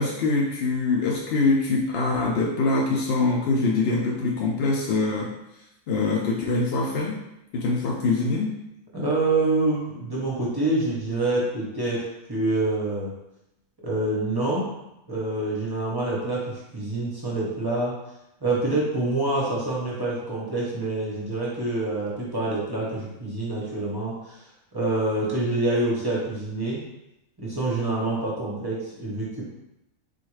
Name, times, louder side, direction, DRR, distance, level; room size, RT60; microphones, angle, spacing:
voice 1, 0.0-5.3 5.9-7.2 7.5-8.6, left 3 dB, 65° left, -3 dB, 0.6 m, -24 dB
voice 2, 8.9-13.1 13.8-14.7 15.1-17.9 18.4-24.4 24.7-26.8 27.4-29.4, right 2 dB, 20° right, -6 dB, 0.6 m, -26 dB
3.8 x 2.5 x 3.1 m, 0.89 s
omnidirectional pair, 1.5 m